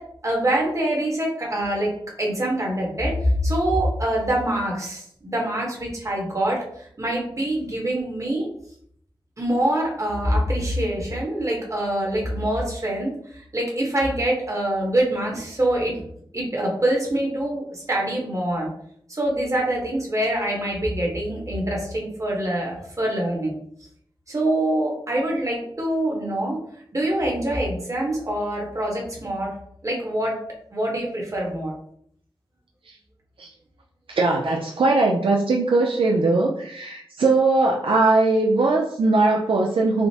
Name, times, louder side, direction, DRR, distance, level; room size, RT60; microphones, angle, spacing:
voice 1, 0.0-8.5 9.4-16.0 16.3-18.7 19.1-23.5 24.3-26.6 26.9-29.5 29.8-30.4 30.7-31.7, right 1 dB, 35° right, -2 dB, 1.1 m, -25 dB
voice 2, 34.1-40.1, right 3 dB, 75° right, 0 dB, 0.4 m, -20 dB
4.9 x 2.0 x 2.8 m, 0.66 s
wide cardioid pair, 90°, 9 cm